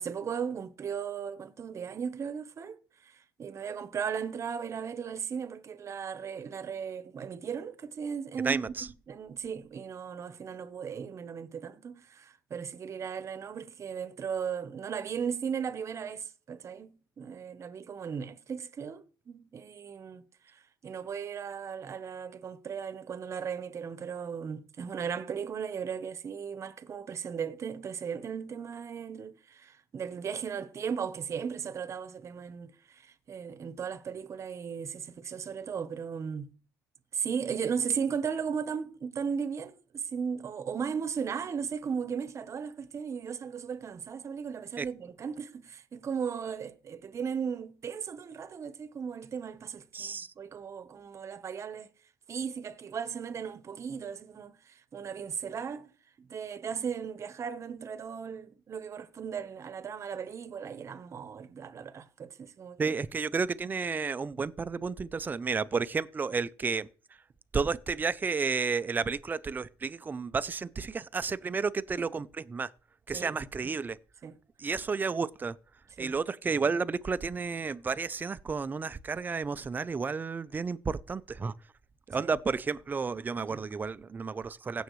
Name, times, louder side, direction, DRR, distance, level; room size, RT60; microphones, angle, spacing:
voice 1, 0.0-36.5 37.1-51.9 52.3-55.9 56.2-62.9 72.0-72.1 73.1-73.5 74.2-74.4 76.0-76.1 82.2-82.4 83.4-83.6, right 7 dB, 40° right, 1.0 m, -36 dB
voice 2, 8.4-8.9 44.8-44.9 49.9-50.3 62.8-66.9 67.5-72.7 73.1-74.0 74.6-75.5 76.0-81.5 82.1-84.8, right 5 dB, 25° right, 0.5 m, -32 dB
16.0 x 7.1 x 3.2 m
cardioid pair, 115°, 8 cm